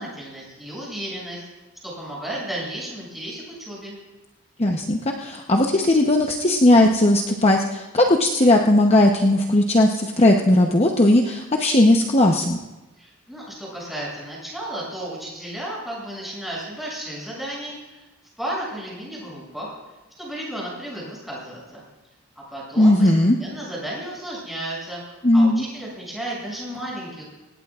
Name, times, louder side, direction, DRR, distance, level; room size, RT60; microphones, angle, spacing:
voice 1, 0.0-1.4 1.8-4.0 13.0-18.1 18.4-19.8 20.2-21.8 22.4-23.1 23.4-27.2, right 1 dB, ahead, -5 dB, 7.1 m, -33 dB
voice 2, 4.6-12.6 22.8-23.4 25.2-25.6, left 1 dB, 30° left, 1 dB, 0.9 m, -17 dB
25.5 x 18.5 x 2.5 m, 1.1 s
head